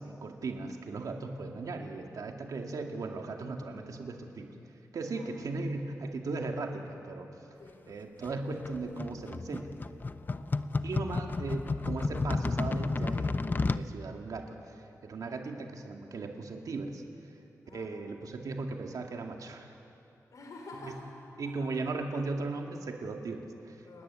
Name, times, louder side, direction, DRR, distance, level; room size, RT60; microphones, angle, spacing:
voice 1, 0.0-4.5 4.9-7.3 7.9-9.7 10.8-17.3 17.7-19.7 20.8-20.9 21.4-23.8, right 3 dB, 70° right, 2 dB, 2.2 m, -37 dB
sound 1, 8.2-13.9, left 3 dB, 30° left, 0.6 m, -32 dB
voice 2, 10.2-10.6 17.6-17.9 20.3-21.1 21.4-21.7 23.8-24.0, left 2 dB, 65° left, 1 dB, 3.7 m, -49 dB
29.5 x 14.5 x 9.9 m, 2.7 s
wide cardioid pair, 130°, 6 cm